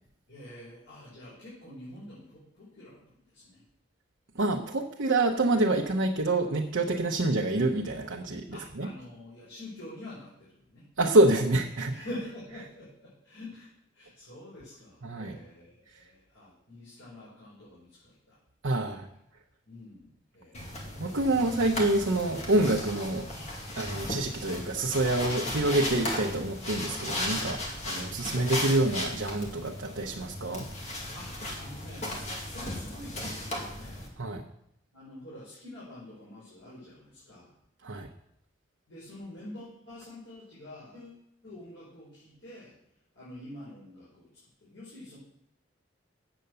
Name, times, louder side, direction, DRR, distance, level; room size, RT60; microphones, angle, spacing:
voice 1, 0.3-3.6 8.5-10.9 11.9-18.4 19.7-21.2 23.9-24.1 27.8-28.2 31.1-34.1 34.9-37.5 38.9-42.8 43.1-45.2, left 1 dB, 85° left, -9 dB, 5.4 m, -46 dB
voice 2, 4.3-8.9 11.0-11.9 15.0-15.4 18.6-19.1 21.0-23.3 23.8-30.7 34.2-34.4 37.8-38.1, right 2 dB, 85° right, 0 dB, 0.9 m, -27 dB
sound 1, 20.5-34.1, left 1 dB, 35° left, 2.2 m, -36 dB
9.1 x 7.9 x 6.9 m, 0.75 s
head